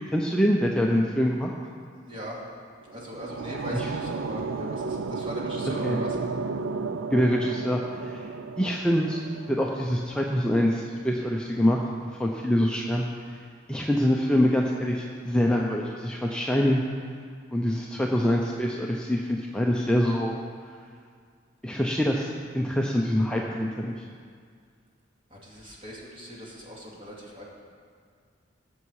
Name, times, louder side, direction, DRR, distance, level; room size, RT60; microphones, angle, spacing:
voice 1, 0.1-1.5 3.7-3.9 5.8-6.3 7.1-8.3 8.6-13.0 13.7-16.8 17.5-20.3 21.6-24.0, equal, 5° left, -1 dB, 0.6 m, -25 dB
voice 2, 2.0-2.4 2.9-6.2 25.3-27.4, equal, 30° right, -4 dB, 2.3 m, -40 dB
sound 1, 2.8-10.0, right 4 dB, 90° right, 0.5 m, -33 dB
17.0 x 7.1 x 4.8 m, 2.1 s
head